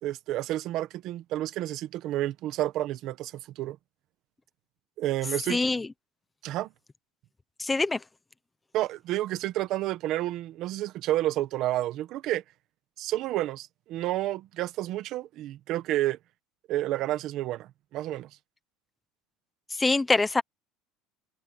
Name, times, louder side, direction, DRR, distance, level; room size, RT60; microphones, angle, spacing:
voice 1, 0.0-3.8 5.0-5.6 6.4-6.7 8.7-12.4 13.0-16.2 16.7-18.3, right 14 dB, 45° right, 1.3 m, -30 dB
voice 2, 5.5-5.9 7.6-8.0 19.7-20.4, left 3 dB, 10° left, 0.9 m, -24 dB
cardioid pair, 175°, 0 cm